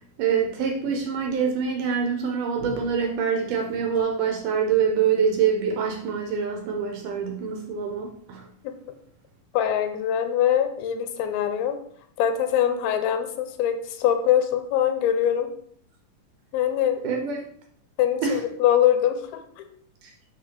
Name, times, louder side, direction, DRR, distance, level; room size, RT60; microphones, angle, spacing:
voice 1, 0.2-8.4 17.0-17.4 18.2-18.4, right 6 dB, 75° right, 2 dB, 2.1 m, -25 dB
voice 2, 9.5-11.8 12.2-15.5 16.5-17.0 18.0-19.7, left 10 dB, 90° left, 7 dB, 2.5 m, -23 dB
7.3 x 3.2 x 5.1 m, 0.63 s
omnidirectional pair, 4.3 m